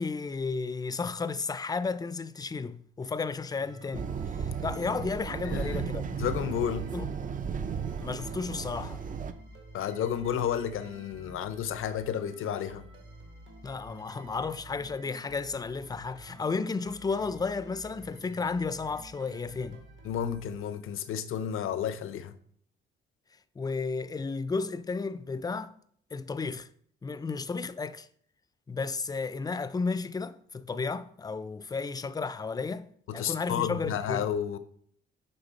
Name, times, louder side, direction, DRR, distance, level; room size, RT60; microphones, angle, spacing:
voice 1, 0.0-4.1 4.4-6.0 6.9-7.1 8.0-9.0 13.6-19.8 23.6-25.8 26.1-26.7 27.0-28.1 28.7-34.3, left 4 dB, 20° left, 0.4 m, -33 dB
sound 1, 3.6-21.1, right 2 dB, 65° right, 1.6 m, -50 dB
sound 2, 3.9-9.3, right 6 dB, 40° right, 0.5 m, -35 dB
voice 2, 5.4-6.9 9.7-12.9 20.0-22.4 33.1-34.6, left 9 dB, 75° left, 0.7 m, -32 dB
11.0 x 3.8 x 4.1 m
cardioid pair, 105°, 21 cm